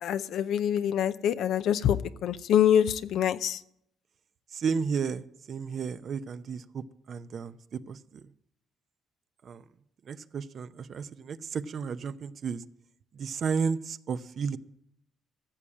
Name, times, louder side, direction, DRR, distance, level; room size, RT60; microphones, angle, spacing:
voice 1, 0.0-3.6, left 9 dB, 75° left, 12 dB, 0.6 m, -25 dB
voice 2, 4.5-8.0 9.4-9.6 10.1-12.6 13.2-14.6, right 6 dB, 55° right, 12 dB, 0.7 m, -33 dB
15.0 x 7.1 x 8.7 m, 0.77 s
supercardioid pair, 70°, 0 cm